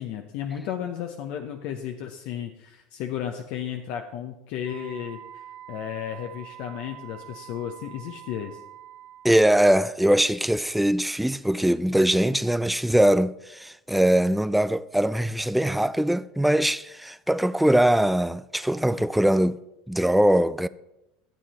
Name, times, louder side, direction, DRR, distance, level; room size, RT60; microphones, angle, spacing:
voice 1, 0.0-8.6, left 9 dB, 65° left, 0.9 m, -34 dB
Wind instrument woodwind instrument, 4.6-9.4, right 12 dB, 75° right, 1.2 m, -45 dB
voice 2, 9.2-19.6 19.9-20.7, right 1 dB, 5° right, 0.4 m, -22 dB
12.0 x 7.4 x 4.3 m
supercardioid pair, 105°, 3 cm